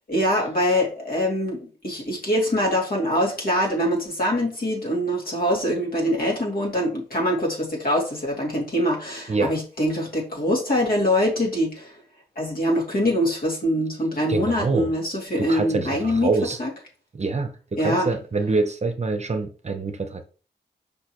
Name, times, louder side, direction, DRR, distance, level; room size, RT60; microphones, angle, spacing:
voice 1, 0.1-12.0 12.4-16.3 16.6-16.7 17.8-18.1, equal, 55° left, 2.6 m, -24 dB
voice 2, 14.3-14.9 15.4-16.6 17.1-17.5 17.8-20.2, right 3 dB, 40° right, 0.8 m, -25 dB
6.3 x 5.4 x 3.0 m
wide cardioid pair, 125°, 18 cm